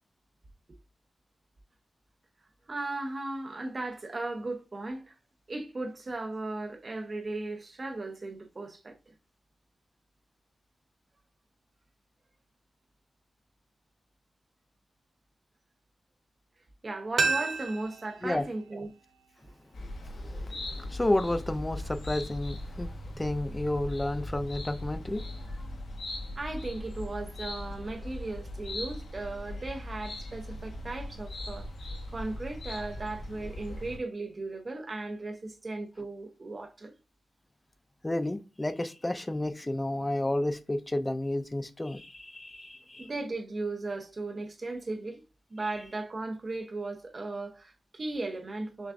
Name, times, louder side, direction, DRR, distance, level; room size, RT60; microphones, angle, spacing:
voice 1, 2.7-5.1 5.5-9.1 16.8-18.9 26.4-31.7 32.1-36.9 43.0-45.2 45.5-48.9, right 2 dB, 40° right, 0.9 m, -36 dB
sound 1, 17.2-20.0 20.3-20.4, right 4 dB, 65° right, 0.6 m, -33 dB
sound 2, 19.7-34.0, left 1 dB, 85° left, 1.2 m, -39 dB
voice 2, 20.2-25.3 38.0-43.1, left 1 dB, 20° left, 0.5 m, -31 dB
6.2 x 2.4 x 2.5 m
cardioid pair, 70°, 0 cm